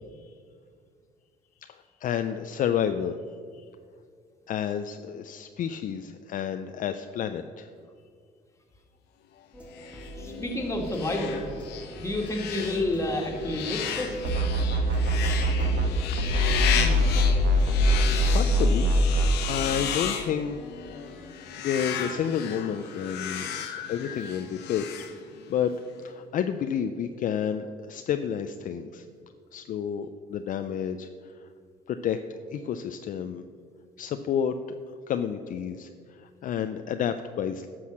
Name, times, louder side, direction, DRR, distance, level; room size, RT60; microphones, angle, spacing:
voice 1, 1.7-3.2 3.6-3.7 4.5-7.7 9.3-9.5 9.7-9.9 16.7-17.1 18.3-18.9 19.4-21.1 21.6-25.0 25.5-25.7 26.0-29.1 29.5-31.5 31.9-32.2 32.5-33.4 34.0-34.5 35.1-37.7, left 8 dB, 50° left, 8 dB, 0.5 m, -30 dB
sound 1, 9.5-20.0, right 1 dB, 5° right, 1.5 m, -43 dB
sound 2, 9.7-25.7, left 8 dB, 85° left, 1.2 m, -34 dB
voice 2, 10.1-11.5 12.0-14.3, left 1 dB, 15° left, 1 dB, 1.9 m, -29 dB
sound 3, 14.2-15.9 16.2-19.3, equal, 80° right, 1.3 m, -22 dB
11.5 x 6.3 x 6.1 m, 2.1 s
cardioid pair, 110°, 17 cm